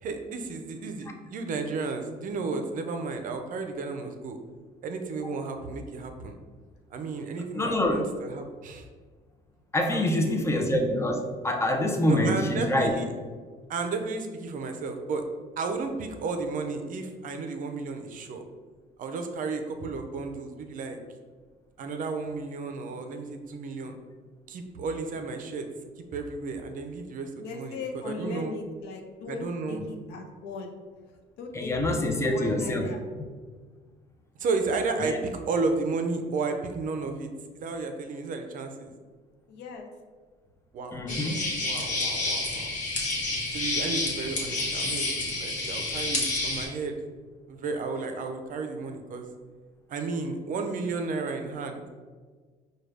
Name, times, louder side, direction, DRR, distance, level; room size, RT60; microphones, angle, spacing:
voice 1, 0.0-4.4 4.8-6.4 6.9-8.9 9.9-10.4 12.1-13.1 13.7-15.2 15.6-18.4 19.0-21.0 21.8-24.0 24.5-25.7 26.1-28.5 29.3-29.8 34.4-38.9 40.7-41.0 41.6-42.7 43.5-47.0 47.5-49.3 49.9-51.8, right 4 dB, 55° right, 5 dB, 0.5 m, -33 dB
voice 2, 7.3-8.1 9.7-12.9 29.8-29.9 31.5-32.9 35.0-35.2 40.9-41.5, left 1 dB, 15° left, 4 dB, 0.5 m, -26 dB
voice 3, 27.4-30.7 31.4-33.0 39.5-39.9 41.1-41.4, left 3 dB, 85° left, 3 dB, 0.6 m, -38 dB
sound 1, 41.1-46.7, left 2 dB, 50° left, 1.0 m, -29 dB
4.7 x 2.3 x 3.2 m, 1.5 s
cardioid pair, 110°, 17 cm